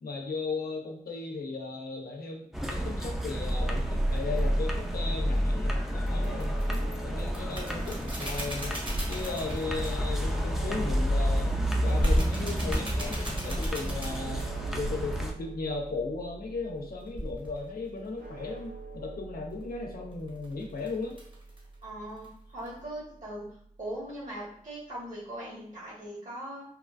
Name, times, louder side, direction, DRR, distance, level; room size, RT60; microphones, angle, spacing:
voice 1, 0.0-8.8 9.1-11.5 11.8-21.2, left 3 dB, 85° left, 1 dB, 0.6 m, -36 dB
sound 1, 2.5-15.3, equal, ahead, 0.4 m, -30 dB
sound 2, 4.2-4.3 6.1-6.8 7.2-10.2 11.9-14.6 17.1-17.6 20.1-21.7 22.2-22.3 22.6-22.8, equal, 35° right, 1.0 m, -34 dB
sound 3, 6.2-24.4, right 3 dB, 85° right, 0.9 m, -46 dB
voice 2, 21.8-23.5 23.8-26.6, right 1 dB, 55° right, -6 dB, 1.5 m, -40 dB
2.9 x 2.3 x 2.4 m, 0.64 s
wide cardioid pair, 70°, 15 cm